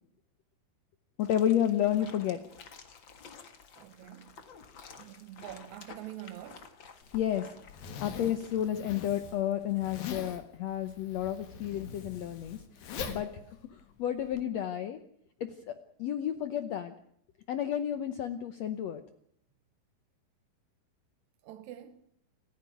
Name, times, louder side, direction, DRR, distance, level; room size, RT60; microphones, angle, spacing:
voice 1, 1.2-2.5 7.1-7.5 8.0-12.6 13.1-13.3 14.0-15.0 15.4-16.9 17.5-19.0, left 10 dB, 90° left, 1.4 m, -31 dB
sound 1, 1.2-8.7, left 5 dB, 45° left, 1.6 m, -52 dB
voice 2, 3.8-4.3 5.0-6.8 13.0-13.3 21.4-22.1, right 12 dB, 70° right, 1.8 m, -46 dB
Zipper (clothing), 7.0-14.4, left 7 dB, 70° left, 3.6 m, -43 dB
28.5 x 10.5 x 9.3 m
omnidirectional pair, 4.4 m